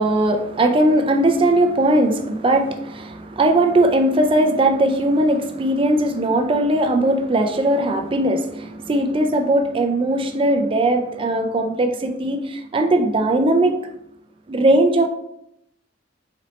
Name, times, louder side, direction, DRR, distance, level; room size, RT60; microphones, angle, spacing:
voice 1, 0.0-13.7 14.5-15.1, right 1 dB, 30° right, 4 dB, 0.4 m, -19 dB
4.1 x 4.1 x 3.1 m, 0.81 s
head